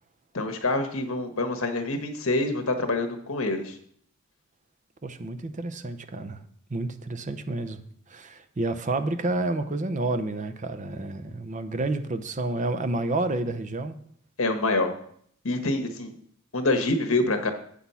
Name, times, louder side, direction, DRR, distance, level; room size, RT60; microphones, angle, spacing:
voice 1, 0.3-3.8 14.4-14.9 15.4-16.1 16.5-17.5, left 2 dB, 75° left, 6 dB, 1.3 m, -26 dB
voice 2, 5.0-6.4 6.7-7.8 8.1-14.0, right 2 dB, 35° right, 10 dB, 0.6 m, -29 dB
8.3 x 6.1 x 5.6 m, 0.64 s
head